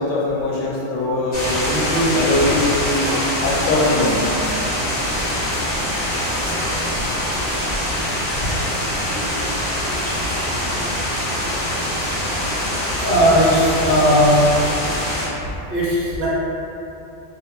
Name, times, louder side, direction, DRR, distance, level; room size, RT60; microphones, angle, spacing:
voice 1, 0.0-3.1 3.4-4.2 9.9-10.0, left 2 dB, 85° left, -5 dB, 0.9 m, -21 dB
sound 1, 1.3-15.3, left 1 dB, 55° left, 0.9 m, -23 dB
voice 2, 13.0-14.6 15.7-16.3, equal, 55° right, -9 dB, 0.8 m, -17 dB
2.4 x 2.1 x 2.8 m, 2.8 s
omnidirectional pair, 1.2 m